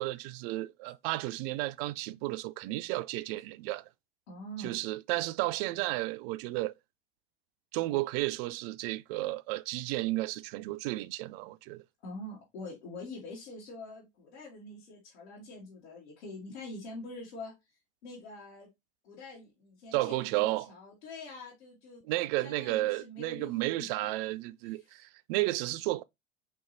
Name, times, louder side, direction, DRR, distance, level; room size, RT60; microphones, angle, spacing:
voice 1, 0.0-3.9 4.6-6.7 7.7-11.8 19.9-20.7 22.0-26.0, right 18 dB, 55° right, 0.4 m, -33 dB
voice 2, 4.3-4.8 12.0-17.5 18.0-18.7 19.0-22.0 22.4-23.9 24.7-24.9, left 2 dB, 75° left, 2.1 m, -45 dB
5.2 x 3.0 x 2.6 m
hypercardioid pair, 90°, 34 cm